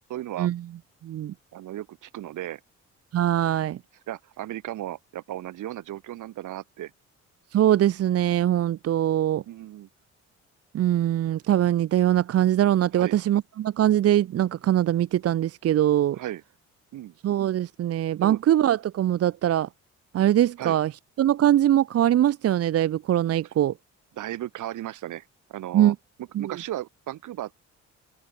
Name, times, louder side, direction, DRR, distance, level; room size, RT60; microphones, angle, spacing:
voice 1, 0.1-0.5 1.5-2.6 4.1-6.9 9.5-9.9 12.9-13.2 16.1-16.4 16.9-17.2 18.2-18.4 20.6-20.8 24.2-25.9 26.4-27.6, right 13 dB, 80° right, 5.8 m, -35 dB
voice 2, 1.0-1.3 3.1-3.8 7.5-9.4 10.7-16.2 17.2-19.7 20.1-20.9 21.2-23.7 25.7-26.0 26.3-26.5, right 12 dB, 50° right, 0.6 m, -22 dB
open air
cardioid pair, 90°, 30 cm